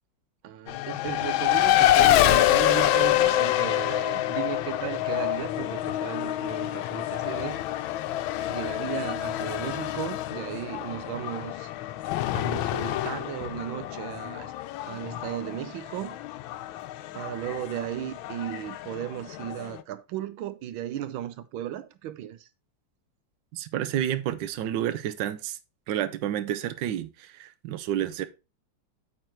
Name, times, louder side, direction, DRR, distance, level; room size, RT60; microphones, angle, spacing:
voice 1, 0.4-8.0 8.5-11.7 12.3-14.5 14.9-16.2 17.1-22.5, right 11 dB, 90° right, 1.5 m, -35 dB
Race car auto racing, 0.7-19.8, left 14 dB, 85° left, 1.4 m, -27 dB
voice 2, 23.5-25.6 25.9-28.3, right 11 dB, 70° right, 1.4 m, -30 dB
8.9 x 4.5 x 4.5 m
omnidirectional pair, 2.1 m